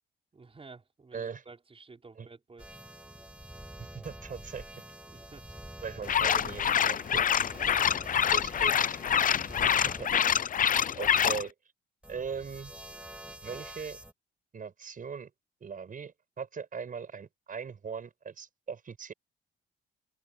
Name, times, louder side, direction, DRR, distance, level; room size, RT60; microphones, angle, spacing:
voice 1, 0.3-2.7 5.1-5.5 7.4-8.0, right 4 dB, 30° right, 5.6 m, -52 dB
voice 2, 1.1-1.4 2.2-2.3 3.8-4.8 5.8-7.4 8.3-8.7 9.8-10.1 10.9-11.5 12.1-12.7 13.4-14.0 14.5-15.3 15.6-19.1, right 6 dB, 45° right, 5.7 m, -40 dB
sound 1, 2.6-10.0 12.0-14.1, right 1 dB, 5° right, 7.6 m, -46 dB
sound 2, 6.0-11.4, left 8 dB, 45° left, 0.6 m, -26 dB
open air
cardioid pair, 90°, 20 cm